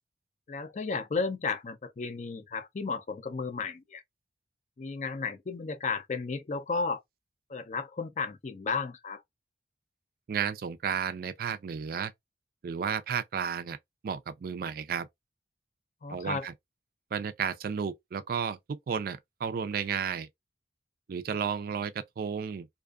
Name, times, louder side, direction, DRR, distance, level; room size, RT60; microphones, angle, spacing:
voice 1, 0.5-4.0 4.8-7.0 7.5-9.2 16.0-16.5, left 4 dB, 40° left, 0.4 m, -33 dB
voice 2, 10.3-12.1 12.6-13.8 14.0-15.1 16.1-16.5 17.1-20.3 21.1-22.7, right 7 dB, 55° right, 0.3 m, -33 dB
2.5 x 2.3 x 2.3 m
head